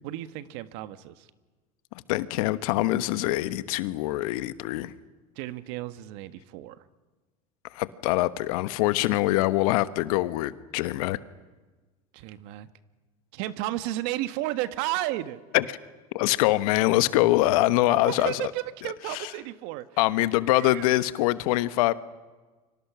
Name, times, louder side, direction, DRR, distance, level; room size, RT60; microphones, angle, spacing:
voice 1, 0.0-1.3 5.3-6.8 12.1-12.7 13.3-15.4 17.9-19.9 20.5-20.9, right 15 dB, 65° right, 11 dB, 1.5 m, -33 dB
voice 2, 2.1-4.9 7.7-11.2 15.5-15.8 16.1-18.5 18.8-19.3 20.0-21.9, left 17 dB, 75° left, 13 dB, 1.2 m, -24 dB
30.0 x 25.0 x 6.2 m, 1.3 s
hypercardioid pair, 95°, 19 cm